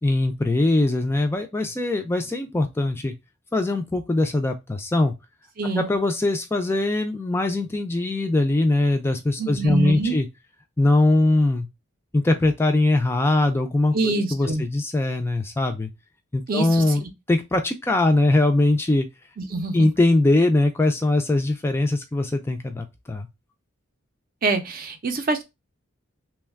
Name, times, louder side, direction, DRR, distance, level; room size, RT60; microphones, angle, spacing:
voice 1, 0.0-3.1 3.5-5.1 5.8-10.3 10.8-11.7 12.1-15.9 16.3-17.0 17.3-19.1 19.7-23.3, left 2 dB, 10° left, 0.3 m, -21 dB
voice 2, 5.6-5.9 9.4-10.2 13.9-14.7 16.5-16.8 19.4-19.9 24.4-25.4, right 3 dB, 45° right, 0.5 m, -25 dB
3.1 x 2.2 x 3.4 m
head